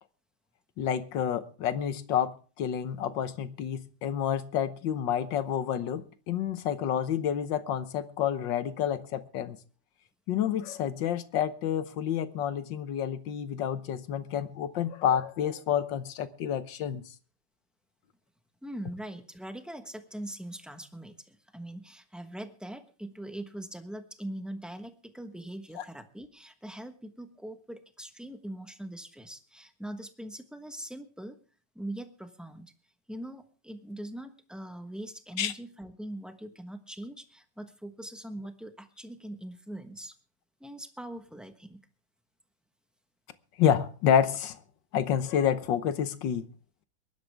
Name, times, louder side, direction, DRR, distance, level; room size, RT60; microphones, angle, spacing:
voice 1, 0.8-9.6 10.3-17.0 25.8-25.9 35.4-35.5 43.6-44.6 44.9-46.5, left 9 dB, 75° left, 1.6 m, -29 dB
voice 2, 18.6-31.4 31.7-32.7 33.1-40.1 40.6-41.8, right 1 dB, ahead, 0.8 m, -42 dB
22.5 x 11.5 x 3.5 m
omnidirectional pair, 2.0 m